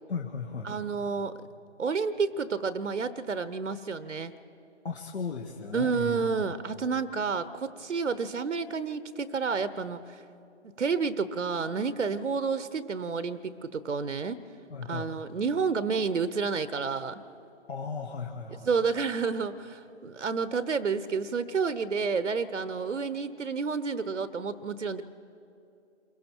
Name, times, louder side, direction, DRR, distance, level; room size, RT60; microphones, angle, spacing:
voice 1, 0.1-0.7 4.8-6.3 14.7-15.1 17.7-18.7, left 5 dB, 65° left, 1 dB, 1.6 m, -36 dB
voice 2, 0.6-1.3 1.8-4.3 5.7-10.2 10.8-14.4 14.8-17.2 18.7-25.0, right 5 dB, 80° right, 14 dB, 1.0 m, -30 dB
28.5 x 22.5 x 4.6 m, 2.7 s
figure-of-eight pair, 150°, 36 cm